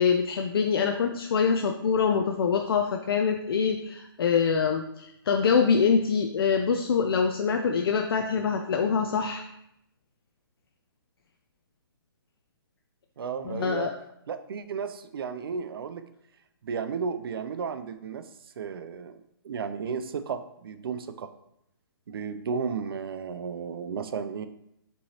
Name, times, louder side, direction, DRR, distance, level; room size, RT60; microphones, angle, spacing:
voice 1, 0.0-9.4 13.4-13.9, left 6 dB, 70° left, 4 dB, 0.4 m, -25 dB
voice 2, 13.2-13.9 14.3-16.1 16.6-18.3 18.6-21.3 22.1-24.5, right 6 dB, 70° right, 11 dB, 0.4 m, -33 dB
5.3 x 3.1 x 2.8 m, 0.77 s
hypercardioid pair, 155°, 13 cm